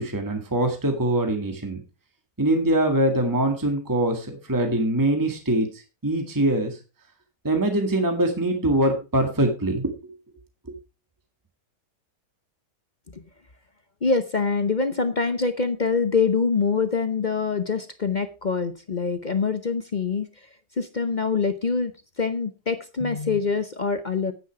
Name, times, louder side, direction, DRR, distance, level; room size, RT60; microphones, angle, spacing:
voice 1, 0.0-1.8 2.4-6.8 7.4-9.9 10.7-10.8, right 1 dB, 10° right, 4 dB, 1.8 m, -23 dB
voice 2, 14.0-20.3 20.8-21.9 22.2-24.3, left 4 dB, 45° left, 10 dB, 0.6 m, -24 dB
9.9 x 9.4 x 4.7 m, 0.30 s
omnidirectional pair, 1.9 m